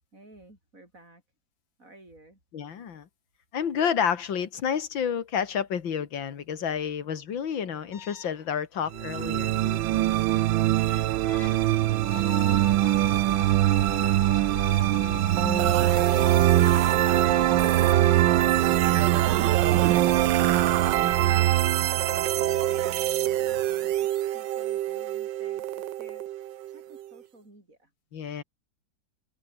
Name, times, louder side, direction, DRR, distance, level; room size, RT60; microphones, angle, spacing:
voice 1, 0.1-1.2 1.8-2.4 10.3-11.8 12.5-14.6 15.9-27.9, right 2 dB, 40° right, 8.0 m, -52 dB
voice 2, 2.5-3.1 3.5-9.5 15.4-15.8 28.1-28.4, left 7 dB, 80° left, 2.5 m, -30 dB
sound 1, 7.9-18.2, left 8 dB, 50° left, 0.9 m, -41 dB
sound 2, 8.9-23.3, right 15 dB, 85° right, 1.5 m, -23 dB
sound 3, 15.3-27.2, right 13 dB, 70° right, 1.4 m, -27 dB
omnidirectional pair, 2.1 m